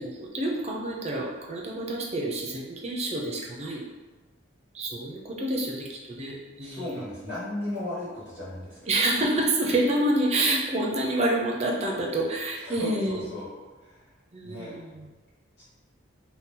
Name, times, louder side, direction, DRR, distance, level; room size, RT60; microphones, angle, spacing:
voice 1, 0.0-3.8 4.7-6.9 8.9-13.3 14.3-15.1, right 1 dB, 30° right, -2 dB, 0.5 m, -28 dB
voice 2, 6.6-8.9 12.6-13.5 13.8-14.0 14.4-14.7 15.6-15.7, left 1 dB, 55° left, -11 dB, 1.4 m, -36 dB
2.8 x 2.2 x 3.7 m, 1.3 s
head